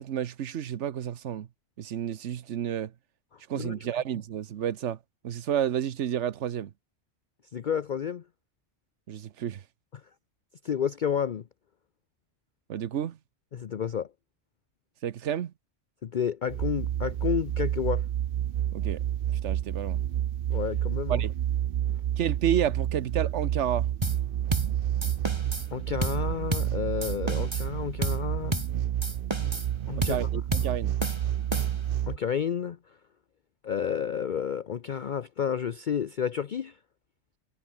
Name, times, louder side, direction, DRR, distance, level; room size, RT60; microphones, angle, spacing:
voice 1, 0.0-1.5 1.8-2.9 3.5-5.0 5.2-6.7 9.1-9.6 12.7-13.2 15.0-15.5 18.7-19.0 19.4-20.0 21.1-21.3 22.2-23.9 30.0-30.9, right 9 dB, 80° right, 1.2 m, -30 dB
voice 2, 3.6-3.9 7.5-8.2 10.6-11.4 13.5-14.1 16.0-18.1 20.5-21.2 25.7-28.5 29.9-30.4 32.1-32.8 33.6-36.8, left 8 dB, 50° left, 0.7 m, -30 dB
sound 1, 16.5-32.2, right 11 dB, 60° right, 0.7 m, -29 dB
sound 2, 24.0-24.2 24.5-24.7 25.0-25.7 26.0-26.2 26.5-26.7 27.0-27.7 28.0-28.2 28.5-28.7 29.0-29.7 30.0-30.2 30.5-30.7 31.0-31.9, right 1 dB, 25° right, 2.9 m, -31 dB
omnidirectional pair, 1.2 m